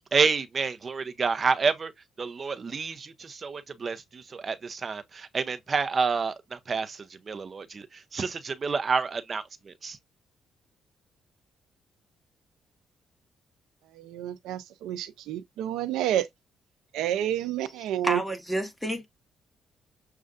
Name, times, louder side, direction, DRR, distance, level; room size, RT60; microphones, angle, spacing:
voice 1, 0.0-1.9 2.2-10.0, right 5 dB, 40° right, 0.6 m, -29 dB
voice 2, 13.9-16.3 16.9-18.2, right 11 dB, 90° right, 0.5 m, -29 dB
voice 3, 18.0-19.0, right 1 dB, ahead, 1.2 m, -29 dB
6.4 x 2.3 x 2.4 m
cardioid pair, 90°, 0 cm